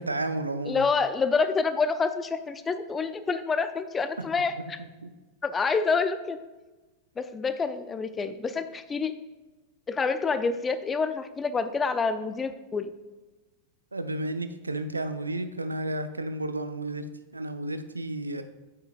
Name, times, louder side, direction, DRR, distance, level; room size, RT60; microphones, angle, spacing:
voice 1, 0.0-0.9 4.6-4.7 5.0-5.1 13.9-17.1 17.3-18.4, right 2 dB, 80° right, 10 dB, 0.5 m, -32 dB
voice 2, 0.6-4.8 5.4-6.4 7.2-9.1 9.9-12.9, left 4 dB, 15° left, 11 dB, 0.5 m, -27 dB
8.8 x 6.7 x 2.4 m, 1.2 s
figure-of-eight pair, 90°, 0 cm